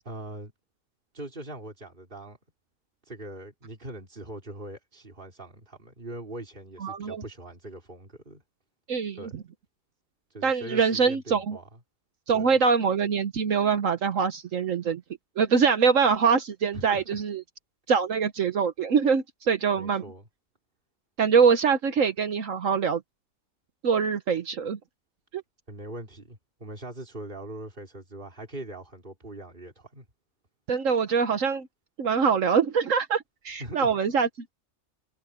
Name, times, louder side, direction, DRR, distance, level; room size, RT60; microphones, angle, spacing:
voice 1, 0.0-0.5 1.1-2.4 3.1-8.4 9.2-9.4 10.3-11.6 12.3-12.5 16.7-17.2 19.8-20.3 25.7-30.1 33.6-33.9, right 1 dB, 35° right, 4.5 m, -41 dB
voice 2, 6.8-7.2 8.9-9.4 10.4-11.6 12.3-15.0 15.4-17.4 17.9-20.0 21.2-23.0 23.8-24.8 25.3-25.4 30.7-31.7 32.0-34.3, right 6 dB, 65° right, 1.3 m, -24 dB
omnidirectional pair, 1.5 m